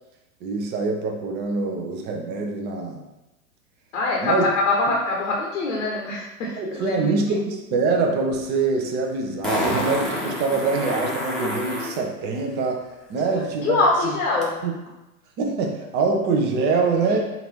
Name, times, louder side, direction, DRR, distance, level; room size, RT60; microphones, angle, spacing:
voice 1, 0.4-3.0 4.2-4.5 6.6-13.8 14.0-14.1 14.6-14.7 15.4-17.2, right 4 dB, 25° right, 2 dB, 0.6 m, -24 dB
voice 2, 3.9-7.0 13.3-14.6 17.1-17.2, left 3 dB, 65° left, -2 dB, 1.0 m, -24 dB
Fart, 8.3-8.4 9.4-12.0 14.4-14.5, equal, ahead, 0.9 m, -28 dB
3.9 x 2.5 x 4.5 m, 1.0 s
hypercardioid pair, 105°, 43 cm